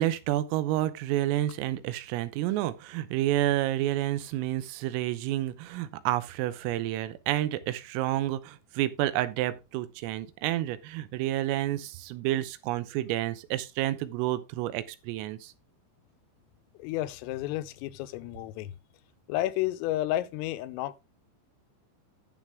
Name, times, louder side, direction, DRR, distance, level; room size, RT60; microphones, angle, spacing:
voice 1, 0.0-15.5, right 14 dB, 85° right, 3.5 m, -29 dB
voice 2, 16.8-18.7 19.3-21.0, left 15 dB, 90° left, 3.4 m, -31 dB
11.0 x 7.4 x 3.5 m
omnidirectional pair, 5.8 m